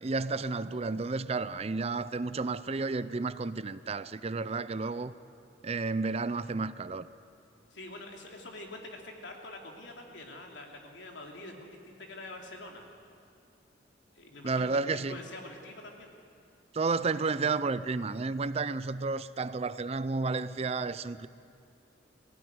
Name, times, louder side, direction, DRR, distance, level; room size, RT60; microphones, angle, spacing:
voice 1, 0.0-5.1 5.6-7.1 14.4-15.2 16.7-21.3, right 4 dB, 35° right, 0.5 m, -31 dB
voice 2, 7.7-12.9 14.1-16.1, left 2 dB, 80° left, 3.1 m, -45 dB
21.0 x 16.0 x 9.6 m
head